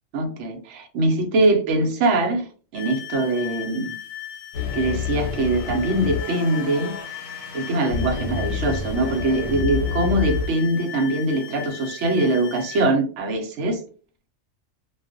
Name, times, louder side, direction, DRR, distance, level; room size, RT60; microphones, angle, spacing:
voice 1, 0.1-2.5 2.7-4.0 4.7-6.9 7.5-13.8, right 2 dB, 70° right, 4 dB, 0.9 m, -22 dB
sound 1, 2.7-12.9, left 11 dB, 60° left, 0.8 m, -37 dB
sound 2, 4.5-10.5, left 5 dB, 80° left, 1.0 m, -29 dB
2.3 x 2.2 x 2.4 m, 0.38 s
omnidirectional pair, 1.3 m